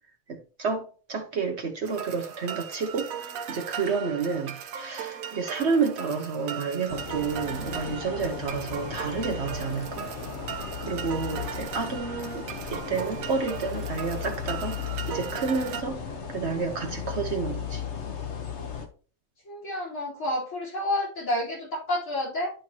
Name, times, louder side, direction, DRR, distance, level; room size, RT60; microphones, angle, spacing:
voice 1, 0.3-10.1 10.8-17.8, right 5 dB, 55° right, 1.1 m, -30 dB
sound 1, 1.9-15.8, right 8 dB, 85° right, 1.2 m, -38 dB
sound 2, 6.9-18.9, left 7 dB, 55° left, 1.4 m, -36 dB
voice 2, 19.5-22.5, left 1 dB, 70° left, 4.0 m, -29 dB
11.5 x 4.4 x 2.9 m
omnidirectional pair, 1.4 m